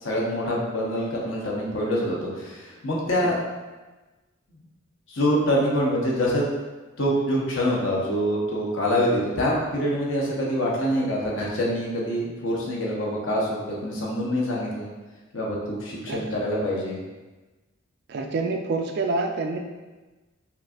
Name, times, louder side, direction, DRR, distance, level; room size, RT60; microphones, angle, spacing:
voice 1, 0.0-3.4 5.1-6.5 7.0-14.9 15.3-17.0, equal, 60° left, -4 dB, 0.9 m, -25 dB
voice 2, 18.1-19.6, right 3 dB, 50° right, 4 dB, 0.3 m, -27 dB
5.5 x 2.5 x 2.4 m, 1.2 s
head